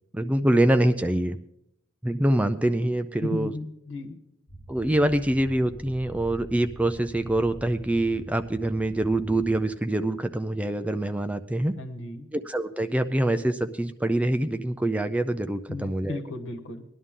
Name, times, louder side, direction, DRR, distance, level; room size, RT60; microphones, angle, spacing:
voice 1, 0.1-1.4 2.0-3.5 4.7-11.7 12.3-16.2, right 1 dB, 5° right, 8 dB, 0.4 m, -25 dB
voice 2, 3.2-4.2 11.7-12.3 15.7-16.8, left 2 dB, 70° left, 5 dB, 1.5 m, -34 dB
sound 1, 4.5-9.5, right 1 dB, 15° left, 3.7 m, -44 dB
19.0 x 11.0 x 3.7 m, 0.79 s
head